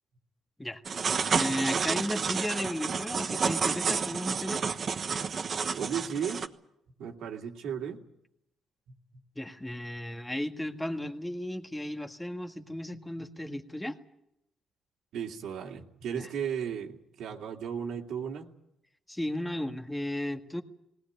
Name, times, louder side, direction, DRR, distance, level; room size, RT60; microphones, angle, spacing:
sound 1, 0.9-6.5, right 5 dB, 45° right, 1.2 m, -30 dB
voice 1, 1.3-4.6 9.3-14.0 16.1-16.3 19.1-20.6, left 1 dB, 10° left, 6 dB, 1.7 m, -34 dB
voice 2, 5.7-6.4 7.0-8.0 15.1-18.5, right 8 dB, 80° right, 0 dB, 2.6 m, -35 dB
19.5 x 18.0 x 9.3 m, 0.82 s
cardioid pair, 90°, 0 cm